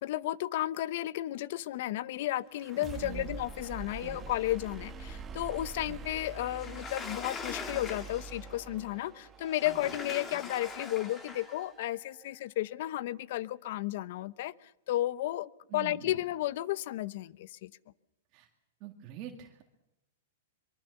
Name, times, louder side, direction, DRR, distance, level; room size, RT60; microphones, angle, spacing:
voice 1, 0.0-17.7, left 15 dB, 55° left, 19 dB, 0.8 m, -33 dB
sound 1, 2.5-12.3, right 5 dB, 15° right, 1.4 m, -46 dB
voice 2, 3.0-3.4 4.0-4.3 5.9-6.0 9.6-9.9 10.3-10.4 15.7-16.2 18.3-18.5 18.8-19.6, right 10 dB, 35° right, 3 dB, 2.1 m, -46 dB
Sliding door, 6.5-8.5 9.4-11.6, left 5 dB, 20° left, 2.6 m, -42 dB
24.0 x 23.0 x 7.1 m, 0.86 s
hypercardioid pair, 150°, 0 cm